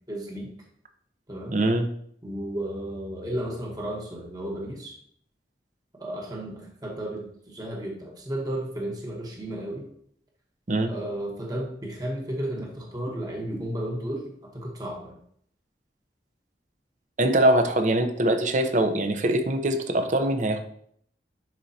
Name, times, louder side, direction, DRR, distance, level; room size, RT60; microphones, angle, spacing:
voice 1, 0.1-0.5 1.3-1.6 2.2-4.9 6.0-9.8 10.9-14.2 14.5-15.1, right 1 dB, 20° right, -1 dB, 1.2 m, -33 dB
voice 2, 1.5-1.9 10.7-10.9 17.2-20.6, right 1 dB, 45° right, 7 dB, 0.8 m, -23 dB
10.5 x 4.6 x 2.8 m, 0.65 s
head